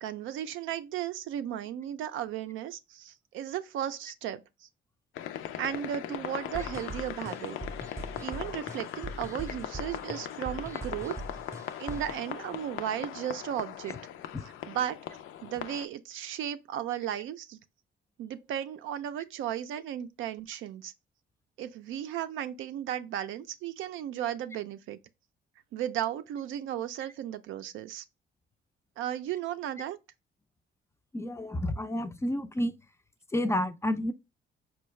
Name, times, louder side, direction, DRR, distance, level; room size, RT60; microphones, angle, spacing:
voice 1, 0.0-4.4 5.6-7.6 8.2-11.1 11.8-14.0 14.7-15.0 15.4-17.6 18.2-20.9 21.6-25.0 25.7-28.0 29.0-30.0, right 10 dB, 80° right, 0.4 m, -35 dB
sound 1, 5.2-15.9, left 10 dB, 85° left, 0.4 m, -39 dB
sound 2, 6.5-12.2, right 1 dB, 15° right, 0.7 m, -42 dB
voice 2, 31.1-32.7 33.3-34.1, left 1 dB, 15° left, 0.3 m, -30 dB
4.6 x 2.2 x 3.1 m
cardioid pair, 90°, 20 cm